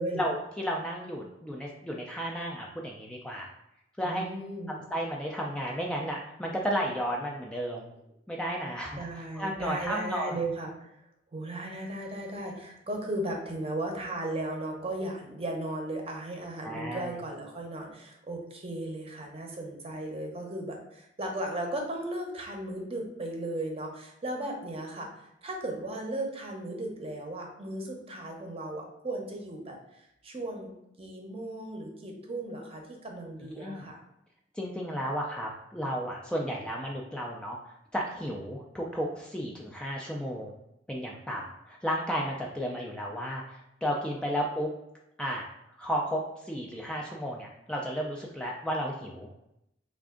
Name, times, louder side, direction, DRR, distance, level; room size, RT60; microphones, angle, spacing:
voice 1, 0.1-3.5 4.0-4.2 4.7-7.9 8.3-10.4 16.6-17.1 33.6-33.8 34.5-40.5 40.9-44.7 45.2-45.4 45.8-49.5, equal, 5° left, -1 dB, 0.3 m, -33 dB
voice 2, 4.0-4.8 9.0-10.9 11.3-30.7 31.0-34.0, right 1 dB, 35° right, 1 dB, 0.7 m, -36 dB
3.4 x 2.4 x 3.6 m, 0.82 s
head